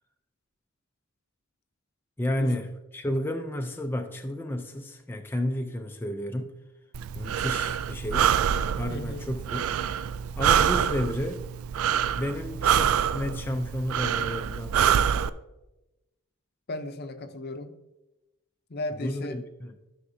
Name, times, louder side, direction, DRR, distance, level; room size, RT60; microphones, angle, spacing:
voice 1, 2.2-2.7 2.9-6.6 7.1-8.3 8.8-9.6 10.4-11.4 12.2-15.0 19.0-19.7, left 1 dB, 10° left, 3 dB, 0.4 m, -31 dB
Breathing, 6.9-15.3, right 8 dB, 80° right, 0.3 m, -26 dB
voice 2, 8.9-9.2 16.7-17.7 18.7-19.4, left 2 dB, 50° left, 9 dB, 0.7 m, -35 dB
13.0 x 5.9 x 2.7 m, 1.0 s
head